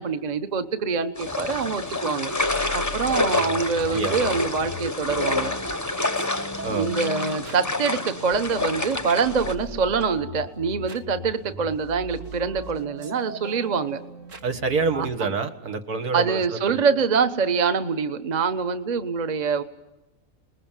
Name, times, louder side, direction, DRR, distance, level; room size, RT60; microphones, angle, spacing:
voice 1, 0.0-2.3 2.7-5.5 6.7-14.0 14.9-15.3 16.1-19.6, right 5 dB, 30° right, 9 dB, 1.0 m, -25 dB
sound 1, 1.2-9.5, left 2 dB, 15° left, 0.7 m, -28 dB
sound 2, 1.4-15.1, right 1 dB, 55° right, 1.8 m, -40 dB
voice 2, 14.4-16.4 16.7-16.8, right 4 dB, 75° right, 7 dB, 2.1 m, -26 dB
29.0 x 20.5 x 7.4 m, 1.0 s
omnidirectional pair, 1.6 m